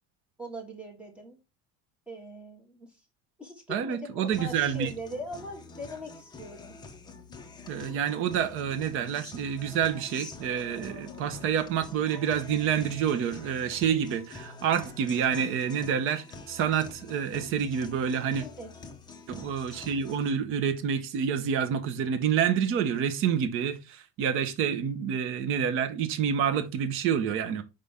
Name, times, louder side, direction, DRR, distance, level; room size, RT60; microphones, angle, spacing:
voice 1, 0.4-1.4 2.1-3.0 3.4-6.7 18.4-18.7, equal, 5° right, 1.7 m, -41 dB
voice 2, 3.7-4.9 7.7-18.5 19.3-27.6, right 8 dB, 40° right, 0.8 m, -28 dB
Guitar, 4.3-20.3, left 3 dB, 15° left, 0.7 m, -46 dB
5.4 x 5.3 x 3.5 m
cardioid pair, 170°, 32 cm